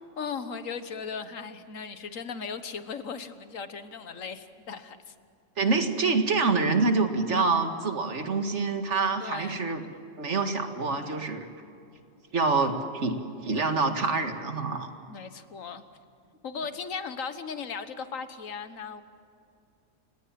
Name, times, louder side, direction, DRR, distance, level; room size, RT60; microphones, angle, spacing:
voice 1, 0.2-5.1 9.2-9.6 15.1-15.8 16.4-19.0, left 5 dB, 80° left, 10 dB, 1.6 m, -37 dB
voice 2, 5.6-9.8 10.2-11.5 12.3-14.9, right 4 dB, 65° right, 6 dB, 2.2 m, -26 dB
29.5 x 18.0 x 7.6 m, 2.5 s
omnidirectional pair, 1.3 m